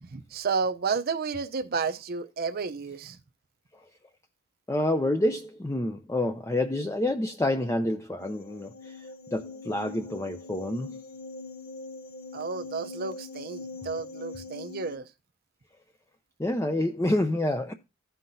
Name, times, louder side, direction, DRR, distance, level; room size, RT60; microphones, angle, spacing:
voice 1, 0.0-3.2 12.3-15.1, right 5 dB, 45° right, 0.6 m, -31 dB
voice 2, 4.7-11.0 16.4-17.7, left 1 dB, 15° left, 0.5 m, -28 dB
sound 1, 8.2-15.0, left 3 dB, 50° left, 0.7 m, -42 dB
15.0 x 5.8 x 2.6 m
head